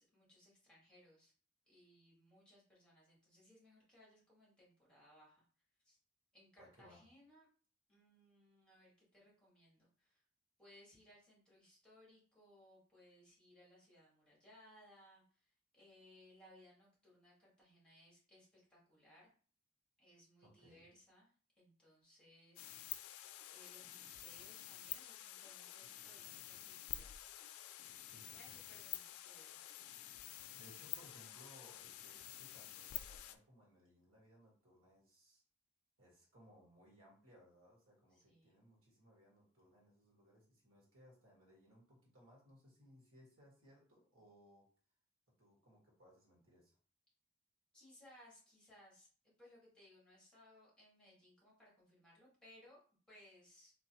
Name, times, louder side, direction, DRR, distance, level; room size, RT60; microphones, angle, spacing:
voice 1, 0.0-1.3 1.6-5.4 5.8-6.0 6.3-7.5 7.9-10.2 10.6-19.3 20.0-23.1 23.5-27.4 28.2-29.7 38.1-38.7 47.7-49.1 49.4-53.7, left 1 dB, 5° left, -6 dB, 1.7 m, -65 dB
voice 2, 6.6-7.0 20.4-20.8 28.1-28.6 30.5-35.4 36.0-44.6 45.4-46.7, equal, 70° right, -3 dB, 1.6 m, -64 dB
sound 1, 22.6-33.4, left 12 dB, 90° left, 0.3 m, -49 dB
3.9 x 3.0 x 2.9 m, 0.42 s
head